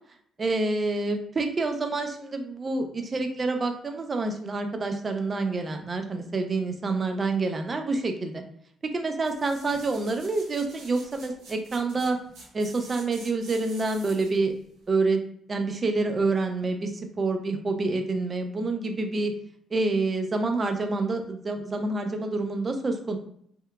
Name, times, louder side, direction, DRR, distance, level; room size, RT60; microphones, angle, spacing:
voice 1, 0.4-8.4 8.8-12.2 12.5-14.5 14.9-15.2 15.5-16.9 17.2-19.3 19.7-23.2, right 3 dB, 35° right, 5 dB, 0.4 m, -27 dB
sound 1, 9.2-14.4 14.9-15.0, right 3 dB, 85° right, 0.8 m, -48 dB
2.7 x 2.1 x 2.3 m, 0.65 s
cardioid pair, 90°, 0 cm